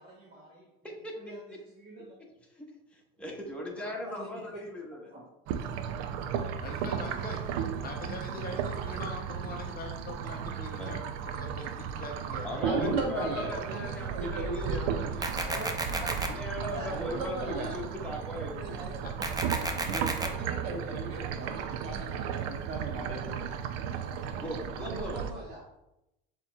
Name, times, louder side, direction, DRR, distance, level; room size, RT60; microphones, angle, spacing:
voice 1, 0.0-0.7 1.2-2.2 3.8-4.6 5.1-5.2 15.5-15.7 16.6-17.6 18.6-19.1 24.7-25.6, right 1 dB, 35° right, -3 dB, 0.9 m, -45 dB
voice 2, 0.8-1.3 2.5-2.7 2.9-5.1 10.8-10.9 12.4-15.6 16.2-18.8 24.4-25.2, left 1 dB, 5° left, -2 dB, 1.1 m, -39 dB
sound 1, 5.5-25.3, right 8 dB, 60° right, 0.5 m, -35 dB
voice 3, 6.6-7.4 7.8-12.6, left 3 dB, 30° left, 2 dB, 0.7 m, -42 dB
voice 4, 12.6-14.8 16.9-17.7 19.8-23.6, right 3 dB, 90° right, 1 dB, 1.2 m, -36 dB
sound 2, 15.2-16.3 19.2-20.3, right 2 dB, 15° right, 0.5 m, -32 dB
6.8 x 3.0 x 2.3 m, 0.89 s
supercardioid pair, 100°, 30 cm